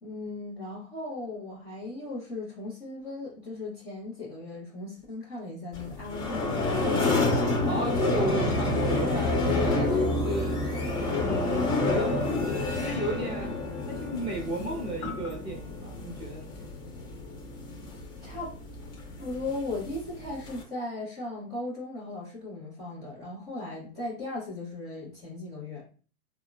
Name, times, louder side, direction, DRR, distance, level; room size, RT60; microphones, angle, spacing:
voice 1, 0.0-7.0 8.4-8.8 18.2-18.5 19.2-25.8, left 2 dB, 10° left, -11 dB, 0.3 m, -37 dB
sound 1, 5.7-20.6, left 2 dB, 30° left, 0.8 m, -29 dB
voice 2, 7.6-10.6 11.2-12.4 12.7-13.6 13.9-16.5, right 2 dB, 10° right, -1 dB, 0.7 m, -34 dB
3.5 x 2.0 x 2.2 m, 0.39 s
hypercardioid pair, 125°, 44 cm